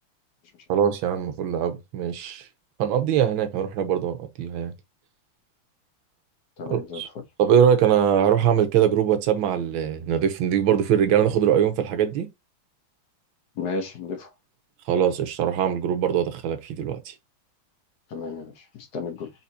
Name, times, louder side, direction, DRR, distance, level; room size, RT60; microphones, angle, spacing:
voice 1, 0.7-2.5 2.8-4.7 6.7-7.1 7.4-12.3 14.9-17.1, right 9 dB, 80° right, 1.7 m, -22 dB
voice 2, 6.6-7.2 13.6-14.3 18.1-19.3, left 4 dB, 55° left, 1.4 m, -33 dB
4.2 x 4.0 x 2.8 m
omnidirectional pair, 2.3 m